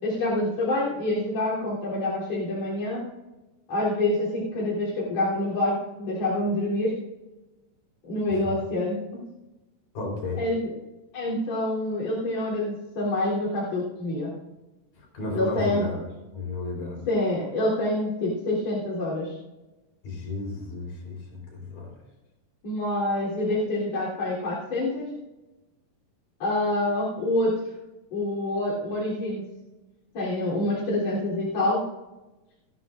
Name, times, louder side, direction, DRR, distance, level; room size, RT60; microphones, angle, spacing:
voice 1, 0.0-3.0 3.7-6.9 8.1-9.0 10.4-10.7 11.1-14.3 15.3-15.9 17.1-19.3 22.6-25.1 26.4-27.5 28.1-29.4 30.1-31.8, left 1 dB, 50° left, -7 dB, 4.7 m, -26 dB
voice 2, 9.9-10.4 15.1-16.0 16.3-17.0 20.0-21.9, left 2 dB, 70° left, -1 dB, 5.9 m, -33 dB
19.0 x 14.0 x 2.6 m, 1.0 s
omnidirectional pair, 3.9 m